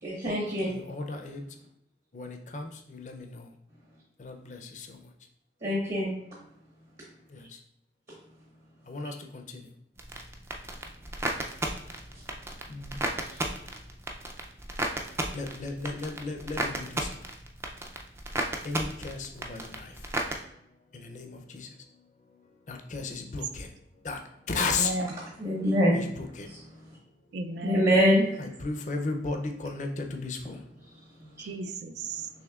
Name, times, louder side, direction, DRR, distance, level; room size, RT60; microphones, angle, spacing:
voice 1, 0.0-0.7 5.6-6.1 13.3-13.4 25.4-26.1 26.5-26.6 27.6-28.3 31.4-31.5, equal, 45° right, -5 dB, 1.0 m, -24 dB
voice 2, 0.7-1.4 2.1-3.5 4.2-5.0 7.3-7.6 8.9-9.7 12.7-13.0 15.3-17.2 18.6-19.9 20.9-21.7 22.7-23.7 24.0-24.2 24.5-24.9 25.9-26.5 28.4-30.6, left 3 dB, 45° left, 4 dB, 0.5 m, -35 dB
sound 1, 10.0-20.3, right 1 dB, 15° right, 0.4 m, -34 dB
voice 3, 24.5-25.1 27.3-28.0 31.4-32.3, right 2 dB, 80° right, 7 dB, 0.4 m, -34 dB
6.3 x 3.0 x 2.4 m, 0.77 s
head